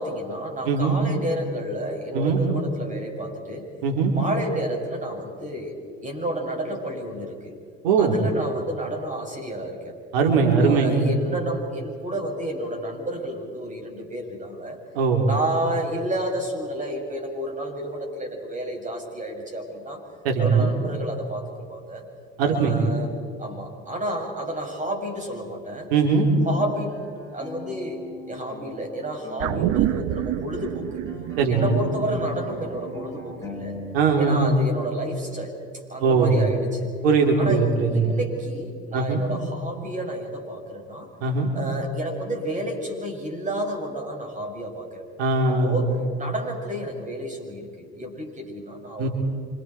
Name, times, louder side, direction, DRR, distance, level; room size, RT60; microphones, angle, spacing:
voice 1, 0.0-3.7 4.1-5.8 6.0-7.6 8.0-9.9 10.6-14.8 15.2-20.0 20.4-22.0 22.4-23.1 23.4-25.9 26.4-31.0 31.5-33.8 34.2-35.6 35.9-36.9 37.4-41.1 41.5-45.1 45.5-49.1, right 1 dB, 25° right, 2 dB, 7.1 m, -31 dB
voice 2, 0.7-1.0 2.1-2.4 3.8-4.1 7.8-8.1 10.1-11.1 14.9-15.3 20.2-20.7 22.4-22.8 25.9-26.3 31.4-31.8 33.9-34.6 36.0-36.4 37.0-38.2 38.9-39.2 41.2-41.5 45.2-45.9 49.0-49.1, right 4 dB, 80° right, 2 dB, 4.1 m, -20 dB
sound 1, 26.4-30.3 30.6-34.4, left 3 dB, 10° left, 6.6 m, -40 dB
sound 2, 29.4-34.0 34.3-34.4, right 14 dB, 65° right, 0.9 m, -29 dB
29.0 x 26.5 x 4.6 m, 2.3 s
hypercardioid pair, 80°, 30 cm